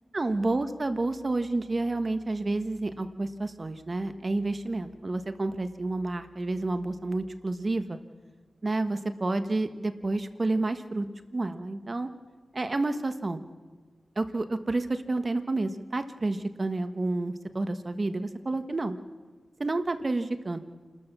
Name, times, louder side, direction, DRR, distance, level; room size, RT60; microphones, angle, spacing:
voice 1, 0.1-8.0 8.6-11.1 11.3-12.1 12.5-13.4 14.1-19.0 19.6-20.6, right 2 dB, 40° right, 9 dB, 1.4 m, -30 dB
28.0 x 13.5 x 7.0 m, 1.4 s
cardioid pair, 65°, 0 cm